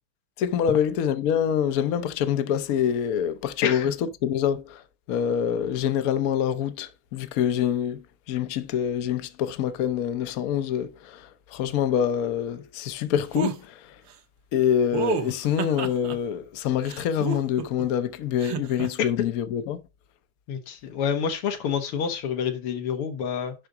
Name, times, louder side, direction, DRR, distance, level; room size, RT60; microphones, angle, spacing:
voice 1, 0.4-3.9 4.2-4.8 5.1-13.9 14.5-19.8, left 9 dB, 60° left, 0.9 m, -26 dB
sound 1, 13.3-13.6 14.9-16.2 16.8-17.8 18.4-18.9, right 7 dB, 65° right, 1.5 m, -30 dB
voice 2, 20.5-23.5, left 7 dB, 90° left, 2.1 m, -28 dB
10.5 x 3.9 x 4.8 m
omnidirectional pair, 2.4 m